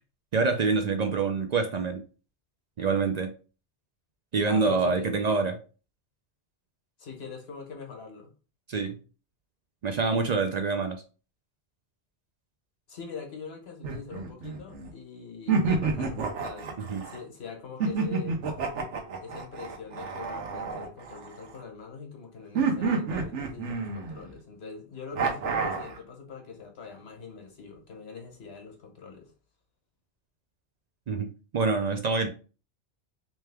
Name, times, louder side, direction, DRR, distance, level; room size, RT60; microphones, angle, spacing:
voice 1, 0.3-2.0 2.8-3.3 4.3-5.6 8.7-9.0 9.8-11.0 16.9-17.0 31.1-31.3 31.5-32.3, right 4 dB, 55° right, 0.5 m, -26 dB
voice 2, 4.5-5.1 7.0-8.3 12.9-18.4 19.2-29.3, left 5 dB, 65° left, 1.3 m, -43 dB
sound 1, 13.8-14.9 15.5-17.2 17.8-21.6 22.5-24.3 25.1-26.0, right 4 dB, 85° right, 1.1 m, -29 dB
3.3 x 3.2 x 3.3 m
omnidirectional pair, 1.2 m